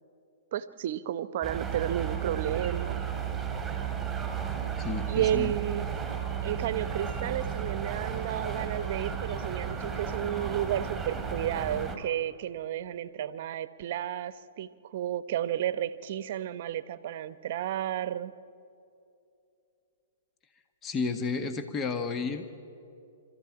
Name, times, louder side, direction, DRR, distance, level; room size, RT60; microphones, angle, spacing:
voice 1, 0.5-3.0 5.1-5.9 6.4-18.3, right 11 dB, 55° right, 15 dB, 0.9 m, -32 dB
sound 1, 1.4-12.0, right 8 dB, 5° right, 3.6 m, -33 dB
voice 2, 4.8-5.5 20.8-22.5, left 4 dB, 25° left, 8 dB, 1.4 m, -32 dB
26.5 x 14.0 x 8.8 m, 2.7 s
hypercardioid pair, 120°, 0 cm